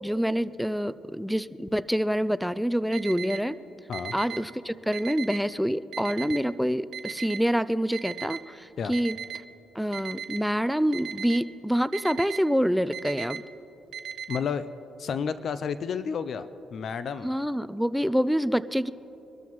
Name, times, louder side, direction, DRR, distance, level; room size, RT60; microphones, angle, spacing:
voice 1, 0.0-3.6 4.1-9.2 9.8-13.4 17.2-18.9, equal, ahead, 15 dB, 0.4 m, -26 dB
Alarm, 2.9-3.4 3.9-4.4 4.9-5.4 5.9-6.4 6.9-7.4 7.9-8.4 8.9-9.4 9.9-10.4 10.9-11.4 11.9-12.4 12.9-13.4 13.9-14.4, right 9 dB, 75° right, 0.8 m, -36 dB
voice 2, 14.3-14.7 15.0-17.3, left 6 dB, 55° left, 13 dB, 0.5 m, -31 dB
24.0 x 13.0 x 3.1 m, 2.9 s
cardioid pair, 90°, 0 cm